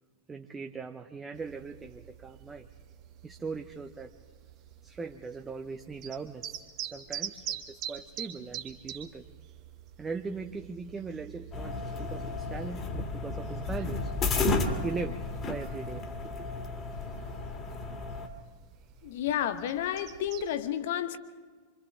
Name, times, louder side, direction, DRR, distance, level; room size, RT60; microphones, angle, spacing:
voice 1, 0.3-2.7 3.2-4.1 4.8-9.2 10.0-14.1 14.8-15.2 15.5-16.5, right 4 dB, 15° right, 0.8 m, -40 dB
sound 1, 1.3-20.6, right 10 dB, 40° right, 1.5 m, -46 dB
sound 2, 11.5-18.3, left 3 dB, 25° left, 2.1 m, -33 dB
voice 2, 19.0-21.2, left 10 dB, 55° left, 1.1 m, -31 dB
26.5 x 25.0 x 3.9 m
figure-of-eight pair, 90°, 0 cm